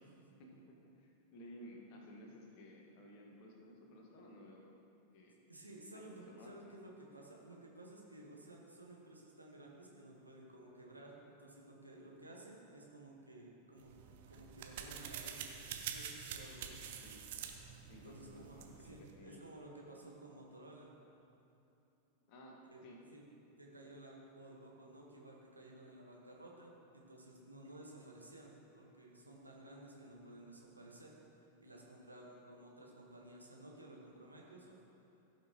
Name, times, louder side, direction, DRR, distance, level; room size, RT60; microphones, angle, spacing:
voice 1, 0.4-4.7 5.1-5.3 5.9-6.5 17.0-17.2 17.9-19.4 22.2-22.6 22.8-23.0, equal, 45° left, -1 dB, 1.6 m, -56 dB
voice 2, 5.5-13.9 14.3-15.5 15.8-16.8 17.9-20.9 22.7-22.8 23.1-23.2 23.6-34.8, right 1 dB, 85° right, -2 dB, 1.4 m, -55 dB
sound 1, 13.8-19.1, right 8 dB, 55° right, 0.8 m, -47 dB
15.5 x 6.1 x 3.0 m, 2.7 s
figure-of-eight pair, 90°, 0 cm